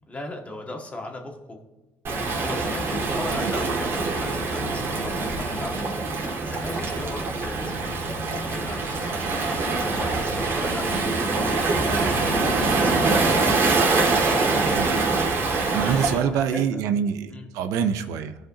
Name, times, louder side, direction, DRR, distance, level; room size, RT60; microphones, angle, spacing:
voice 1, 0.1-1.6 2.4-7.7 8.3-14.8 15.8-16.8 17.3-17.5, left 2 dB, 25° left, 2 dB, 1.7 m, -37 dB
Waves surf, 2.0-16.2, right 3 dB, 50° right, 2.0 m, -24 dB
voice 2, 15.7-18.4, right 8 dB, 80° right, 10 dB, 0.5 m, -25 dB
14.5 x 5.0 x 2.8 m, 1.1 s
supercardioid pair, 75°, 5 cm